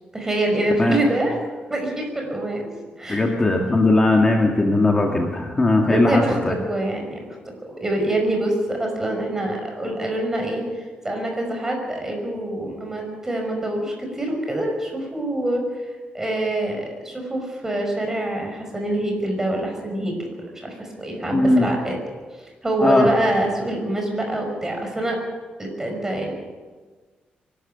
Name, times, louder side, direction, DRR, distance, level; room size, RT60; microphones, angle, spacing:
voice 1, 0.1-1.3 1.7-2.6 3.0-3.3 5.8-15.6 16.1-20.3 20.5-21.9 22.4-25.2 25.6-26.3, right 1 dB, 15° right, 2 dB, 5.6 m, -25 dB
voice 2, 3.1-6.5 21.3-21.7 22.8-23.1, left 2 dB, 20° left, 1 dB, 2.0 m, -18 dB
24.0 x 12.5 x 9.0 m, 1.4 s
cardioid pair, 140°, 3 cm